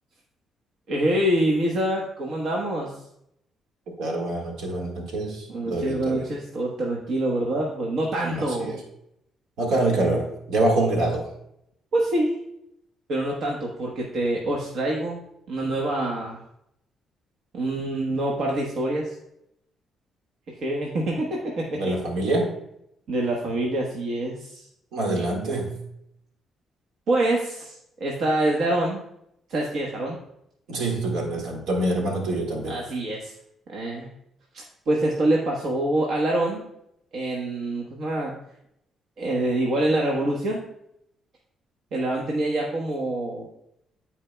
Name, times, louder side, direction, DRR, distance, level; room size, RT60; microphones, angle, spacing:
voice 1, 0.9-2.9 5.5-8.7 11.9-12.4 13.1-15.2 15.5-16.4 17.5-19.1 20.5-21.8 23.1-24.6 27.1-29.0 29.5-30.2 32.7-33.3 33.7-34.1 34.5-36.6 37.1-38.3 39.2-40.6 41.9-43.5, right 1 dB, 70° right, -2 dB, 1.2 m, -25 dB
voice 2, 4.0-6.3 8.3-8.8 9.6-11.3 21.8-22.5 24.9-25.8 30.7-32.8, right 2 dB, 85° right, 1 dB, 1.8 m, -25 dB
13.0 x 4.5 x 2.3 m, 0.78 s
cardioid pair, 90°, 0 cm